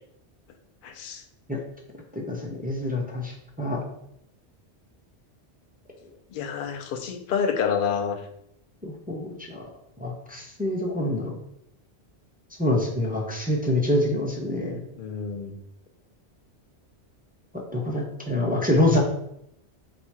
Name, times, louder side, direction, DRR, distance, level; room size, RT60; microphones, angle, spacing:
voice 1, 0.8-1.2 6.3-8.2 15.0-15.6, left 7 dB, 60° left, 6 dB, 0.6 m, -28 dB
voice 2, 2.1-3.8 8.8-9.6 10.0-11.4 12.6-14.8 17.7-19.0, left 1 dB, 15° right, -2 dB, 0.4 m, -26 dB
4.1 x 2.3 x 4.5 m, 0.78 s
omnidirectional pair, 1.2 m